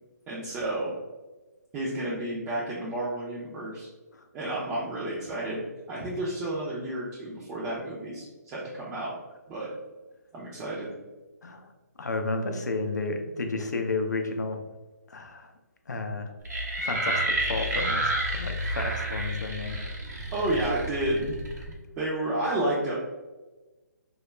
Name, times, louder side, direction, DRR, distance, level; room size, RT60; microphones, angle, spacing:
voice 1, 0.3-0.9 1.7-3.9 4.3-9.1 9.5-9.7 10.3-10.9 20.3-21.4 21.7-22.9, right 1 dB, 15° right, -7 dB, 0.4 m, -31 dB
voice 2, 12.0-14.6 15.1-15.5 15.9-16.3 16.8-19.8, left 3 dB, 80° left, 5 dB, 0.4 m, -32 dB
sound 1, 16.4-21.7, right 1 dB, 70° right, 0.7 m, -30 dB
2.3 x 2.1 x 3.1 m, 1.2 s
hypercardioid pair, 145°, 9 cm